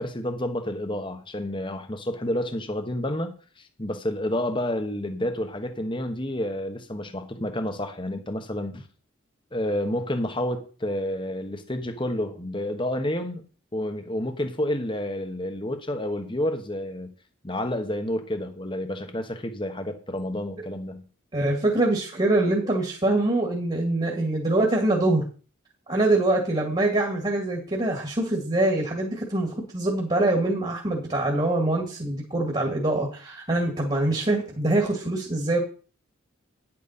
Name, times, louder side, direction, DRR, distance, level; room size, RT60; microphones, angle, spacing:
voice 1, 0.0-8.9 9.5-13.4 13.7-17.1 17.4-21.1, left 1 dB, 25° left, 7 dB, 1.2 m, -29 dB
voice 2, 21.3-25.2 25.9-35.6, right 2 dB, 25° right, 1 dB, 2.0 m, -24 dB
10.5 x 8.7 x 4.3 m, 0.39 s
head